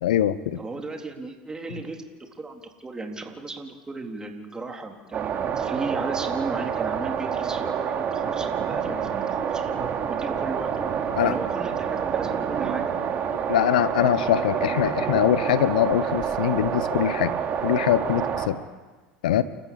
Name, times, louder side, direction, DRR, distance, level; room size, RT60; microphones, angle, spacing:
voice 1, 0.0-0.6 11.1-11.4 13.5-18.6 19.2-19.4, left 11 dB, 75° left, 15 dB, 1.1 m, -23 dB
voice 2, 0.6-10.8 11.2-12.9, right 3 dB, 15° right, 3 dB, 3.8 m, -36 dB
sound 1, 5.1-18.5, right 7 dB, 40° right, 3.0 m, -27 dB
29.5 x 14.0 x 8.6 m, 1.3 s
hypercardioid pair, 80°, 4 cm